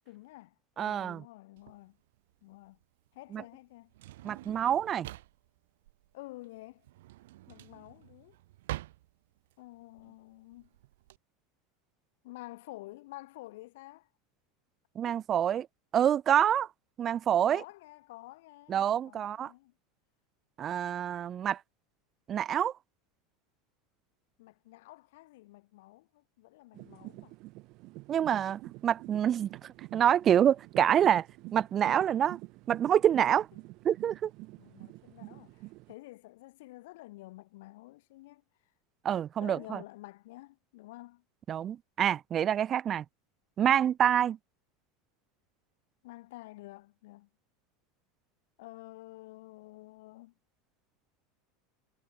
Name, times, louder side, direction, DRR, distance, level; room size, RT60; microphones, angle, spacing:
voice 1, 0.0-2.0 2.4-2.8 3.1-3.9 6.1-6.8 7.5-8.4 9.6-10.7 12.2-14.1 15.1-15.2 17.4-19.7 24.4-27.4 33.3-33.4 34.6-38.4 39.4-41.2 46.0-47.3 48.6-50.3, left 19 dB, 70° left, 3.6 m, -50 dB
voice 2, 0.8-1.2 3.3-3.4 4.2-5.1 15.0-15.7 15.9-16.7 17.0-17.6 18.7-19.5 20.6-21.6 22.3-22.7 28.1-29.5 29.9-31.3 31.5-32.4 32.7-33.5 33.8-34.3 39.0-39.8 41.5-43.0 43.6-44.4, right 9 dB, 25° right, 0.3 m, -26 dB
Drawer open or close, 1.6-11.2, right 16 dB, 85° right, 3.6 m, -46 dB
sound 1, 26.7-35.9, right 22 dB, 45° right, 7.7 m, -48 dB
supercardioid pair, 170°, 0 cm